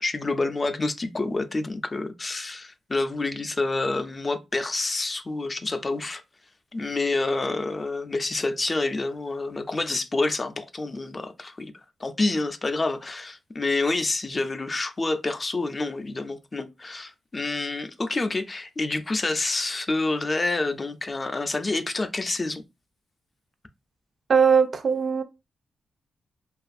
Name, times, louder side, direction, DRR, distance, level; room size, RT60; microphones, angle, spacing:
voice 1, 0.0-6.2 6.7-11.7 12.0-22.6, left 2 dB, 30° left, 0.3 m, -28 dB
voice 2, 24.3-25.2, right 6 dB, 50° right, 0.3 m, -20 dB
2.5 x 2.3 x 2.4 m
cardioid pair, 90°, 0 cm